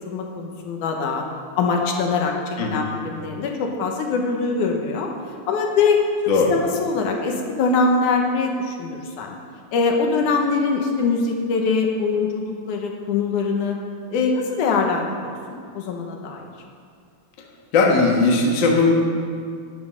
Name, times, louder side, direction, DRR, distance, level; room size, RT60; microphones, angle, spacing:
voice 1, 0.1-1.2 1.6-5.1 5.5-9.4 9.7-13.8 14.1-16.5, left 4 dB, 75° left, 2 dB, 2.4 m, -23 dB
voice 2, 17.7-18.9, left 3 dB, 45° left, 0 dB, 1.6 m, -18 dB
11.0 x 9.7 x 6.3 m, 2.2 s
omnidirectional pair, 3.7 m